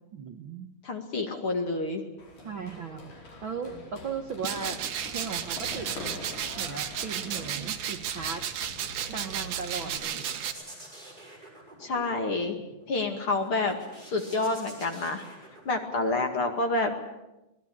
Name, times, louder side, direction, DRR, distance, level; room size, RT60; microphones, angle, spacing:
voice 1, 0.1-0.7 2.4-3.1 3.4-5.9 6.6-8.4 9.1-10.2, right 6 dB, 55° right, 5 dB, 1.5 m, -37 dB
voice 2, 0.8-2.0 11.8-12.6 12.9-13.8 14.0-15.2 15.7-16.9, left 2 dB, 45° left, 5 dB, 2.7 m, -28 dB
Run, 2.2-9.9, left 2 dB, 60° left, 6.2 m, -44 dB
sound 1, 4.4-10.5, right 9 dB, 90° right, 3.1 m, -34 dB
sound 2, 8.7-16.4, right 1 dB, 15° right, 5.8 m, -49 dB
25.5 x 19.5 x 8.6 m, 0.96 s
omnidirectional pair, 3.8 m